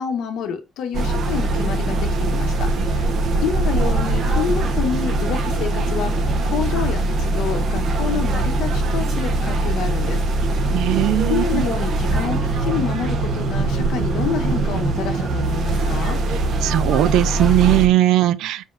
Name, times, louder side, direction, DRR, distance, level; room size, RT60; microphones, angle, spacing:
voice 1, 0.0-3.1 3.4-6.1 6.4-10.2 10.5-10.6 11.3-16.2, left 8 dB, 75° left, 1.5 m, -28 dB
sound 1, 0.9-17.9, right 2 dB, 55° right, 1.5 m, -21 dB
voice 2, 10.7-11.6 16.6-18.6, right 14 dB, 85° right, 0.5 m, -18 dB
6.8 x 5.7 x 2.8 m
cardioid pair, 120°, 0 cm